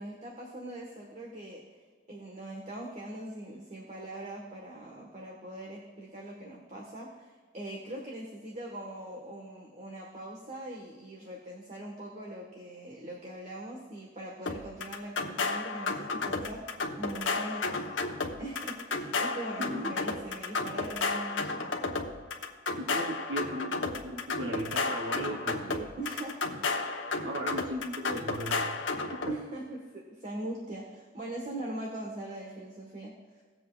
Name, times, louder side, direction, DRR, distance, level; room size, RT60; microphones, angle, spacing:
voice 1, 0.0-1.6 2.1-16.6 17.0-17.9 18.4-21.7 25.9-26.4 27.2-27.3 29.2-33.1, right 1 dB, 40° right, -2 dB, 1.4 m, -41 dB
Insomniac Drum Loop, 14.5-29.3, left 3 dB, 75° left, 1.0 m, -33 dB
voice 2, 19.6-19.9 22.8-25.9 27.2-28.8 29.2-29.3, right 1 dB, 65° right, 0 dB, 0.9 m, -37 dB
18.0 x 7.7 x 2.4 m, 1.5 s
head